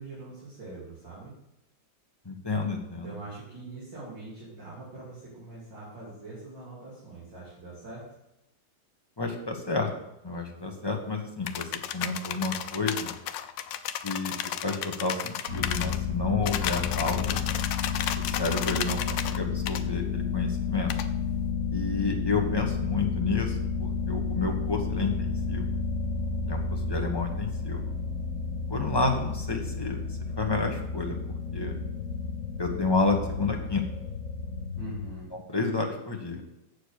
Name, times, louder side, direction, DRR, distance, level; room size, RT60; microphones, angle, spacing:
voice 1, 0.0-1.3 3.0-8.1 34.8-35.3, right 3 dB, 80° right, -8 dB, 3.8 m, -43 dB
voice 2, 2.2-3.1 9.2-9.9 10.2-13.1 14.0-14.3 14.6-17.5 18.2-20.9 21.7-25.7 26.4-27.9 28.7-30.0 30.4-31.2 31.5-31.8 32.6-34.0 35.5-36.4, left 3 dB, 15° left, 1 dB, 1.1 m, -30 dB
sound 1, 11.5-16.0 16.5-19.4 19.7-19.8 20.9-21.1, left 10 dB, 85° left, 1.3 m, -33 dB
sound 2, 15.5-35.1, left 5 dB, 40° right, 2.0 m, -31 dB
8.0 x 6.7 x 6.6 m, 0.87 s
omnidirectional pair, 1.9 m